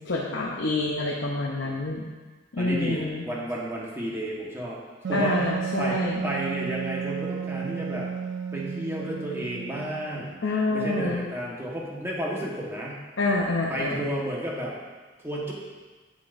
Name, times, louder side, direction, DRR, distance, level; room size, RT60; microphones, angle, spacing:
voice 1, 0.0-2.1 2.5-3.2 5.1-6.2 10.4-11.2 13.2-14.0, left 2 dB, 80° left, -3 dB, 0.8 m, -27 dB
voice 2, 2.6-4.8 5.1-5.5 5.8-8.1 8.5-10.4 10.7-13.0 13.7-14.7 15.2-15.5, right 1 dB, 15° right, -4 dB, 1.3 m, -32 dB
Wind instrument woodwind instrument, 5.0-10.4, right 6 dB, 75° right, 0.4 m, -32 dB
8.8 x 7.1 x 2.6 m, 1.3 s
head